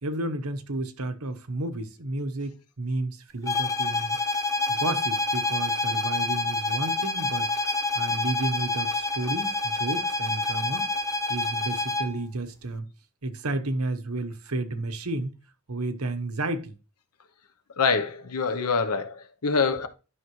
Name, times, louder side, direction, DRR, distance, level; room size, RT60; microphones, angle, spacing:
voice 1, 0.0-4.2 4.7-7.5 7.9-10.9 11.3-12.8 13.2-15.3 15.7-16.8, right 2 dB, 75° right, 1.1 m, -32 dB
sound 1, 3.5-12.2, left 2 dB, 15° left, 0.6 m, -27 dB
voice 2, 17.8-19.9, left 5 dB, 85° left, 0.9 m, -25 dB
11.0 x 5.8 x 3.1 m
head